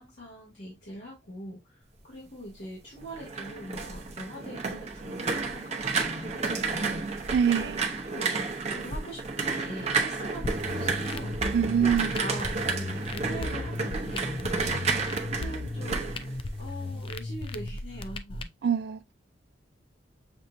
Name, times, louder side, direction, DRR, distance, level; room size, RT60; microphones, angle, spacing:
voice 1, 0.0-7.1 7.5-18.5, equal, 65° left, 2.3 m, -43 dB
sound 1, 3.0-17.0 17.3-17.7, right 4 dB, 35° right, 0.9 m, -31 dB
voice 2, 7.3-7.8 11.5-12.1 18.6-19.1, right 7 dB, 60° right, 0.4 m, -25 dB
sound 2, 10.4-18.4, left 2 dB, 30° left, 0.4 m, -36 dB
7.0 x 2.8 x 2.6 m
head